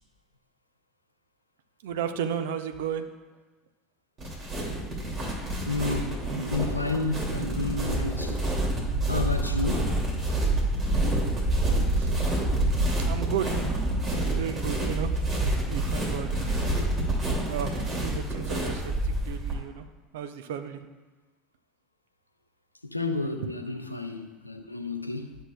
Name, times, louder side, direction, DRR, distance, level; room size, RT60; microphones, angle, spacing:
voice 1, 1.8-3.1 12.0-12.1 13.0-13.6 14.1-15.2 15.7-16.4 17.5-19.9 20.1-20.8, right 8 dB, 65° right, 0.6 m, -33 dB
sound 1, 4.2-19.5, right 1 dB, 35° right, 2.5 m, -27 dB
voice 2, 5.7-8.4 9.1-9.9 22.8-25.4, left 2 dB, 85° left, 0.5 m, -31 dB
12.0 x 6.6 x 2.3 m
figure-of-eight pair, 70°, 0 cm